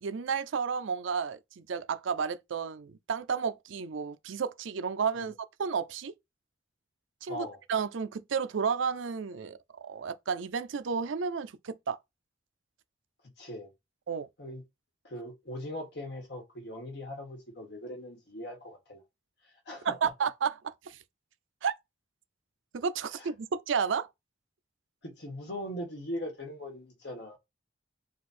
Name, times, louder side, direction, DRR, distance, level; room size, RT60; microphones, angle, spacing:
voice 1, 0.0-6.1 7.2-12.0 14.1-14.3 19.8-21.0 21.6-21.7 22.7-24.1, right 6 dB, 80° right, 0.5 m, -32 dB
voice 2, 7.3-7.6 13.4-13.7 14.4-14.6 15.0-19.0 19.4-20.1 23.1-23.3 25.0-27.4, left 1 dB, 60° left, 1.7 m, -40 dB
4.0 x 2.5 x 4.2 m
head